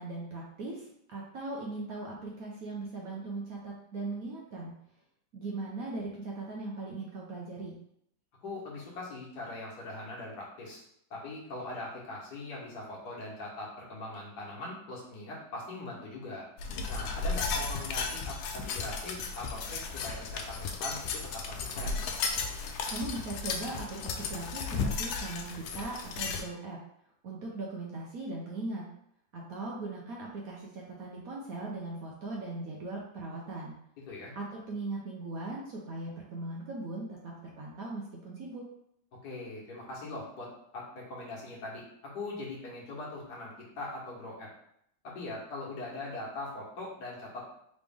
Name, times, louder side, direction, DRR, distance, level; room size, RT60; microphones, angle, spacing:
voice 1, 0.0-4.7 5.3-7.8 22.9-26.8 27.2-28.9 29.3-33.8 34.3-38.7, right 2 dB, 65° right, -3 dB, 0.9 m, -39 dB
voice 2, 8.4-10.8 11.1-16.5 16.9-22.0 34.1-34.3 39.2-40.5 40.7-41.8 42.1-44.5 45.0-47.4, left 2 dB, 55° left, -4 dB, 1.7 m, -41 dB
sound 1, 16.6-26.4, left 4 dB, 85° left, 1.4 m, -34 dB
4.0 x 3.2 x 3.5 m, 0.72 s
omnidirectional pair, 2.2 m